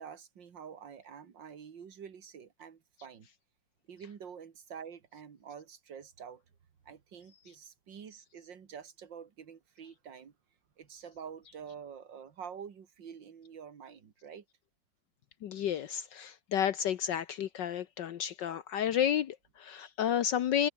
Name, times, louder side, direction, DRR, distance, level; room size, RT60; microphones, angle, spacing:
voice 1, 0.0-3.3 3.9-6.4 6.9-10.3 10.8-14.4, right 7 dB, 75° right, 2.6 m, -47 dB
voice 2, 15.4-20.7, left 9 dB, 70° left, 1.6 m, -31 dB
omnidirectional pair, 2.0 m